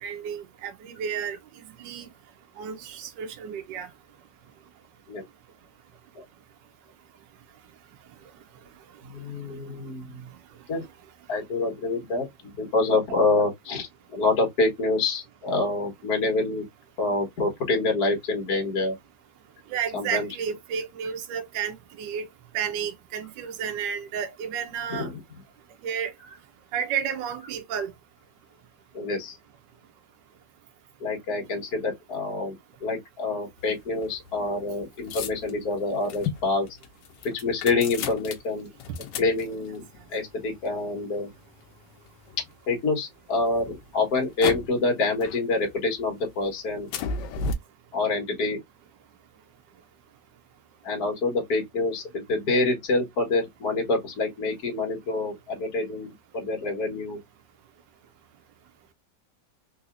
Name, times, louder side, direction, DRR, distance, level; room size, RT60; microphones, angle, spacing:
voice 1, 0.0-1.4 1.8-2.1 2.6-3.9 19.7-22.3 22.5-25.1 25.8-26.1 26.7-27.9, right 7 dB, 80° right, 1.4 m, -31 dB
voice 2, 9.0-10.3 10.7-10.8 11.3-16.7 17.0-19.0 19.9-20.3 24.9-25.2 28.9-29.4 31.0-32.6 32.8-36.7 37.2-38.7 39.2-39.8 40.1-41.3 42.7-46.9 47.9-48.6 50.8-57.2, left 3 dB, 60° left, 1.7 m, -26 dB
sound 1, 33.6-42.8 43.3-44.9 45.2-46.0 46.3-47.5, left 5 dB, 80° left, 1.3 m, -36 dB
3.9 x 2.8 x 2.4 m
omnidirectional pair, 1.9 m